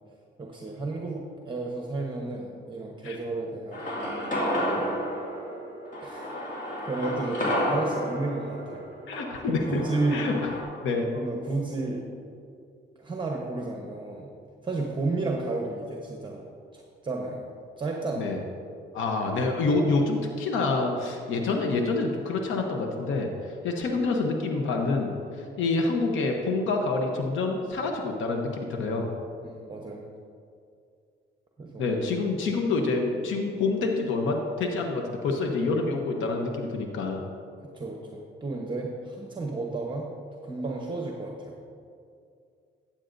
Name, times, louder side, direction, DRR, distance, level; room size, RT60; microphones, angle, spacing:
voice 1, 0.4-3.8 4.6-5.0 6.0-6.3 6.8-8.9 9.7-10.3 11.1-12.1 13.0-14.3 14.6-16.4 16.7-17.5 17.8-18.3 29.4-30.1 31.6-31.9 37.7-40.1 40.4-41.5, right 3 dB, 25° right, 0 dB, 1.0 m, -32 dB
sound 1, 3.7-10.6, equal, 40° left, 2.2 m, -31 dB
voice 2, 9.1-9.8 10.1-10.4 10.8-11.1 18.2-18.4 18.9-29.1 31.8-37.2, left 3 dB, 80° left, 2 dB, 1.0 m, -27 dB
12.0 x 8.9 x 2.6 m, 2.4 s
cardioid pair, 90°, 20 cm